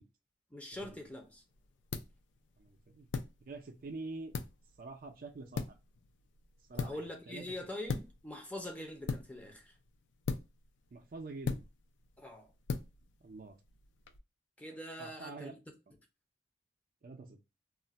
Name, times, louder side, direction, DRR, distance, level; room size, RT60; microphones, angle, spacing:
voice 1, 0.5-1.4 6.8-9.8 12.2-12.5 14.6-15.6, left 1 dB, 10° left, 0.5 m, -44 dB
sound 1, 0.7-14.2, left 5 dB, 75° left, 0.4 m, -42 dB
voice 2, 2.6-3.1 3.4-4.3 4.8-5.8 6.7-7.4 10.9-11.6 13.2-13.6 15.0-15.5 17.0-17.4, right 3 dB, 50° right, 0.4 m, -46 dB
2.4 x 2.1 x 3.9 m
head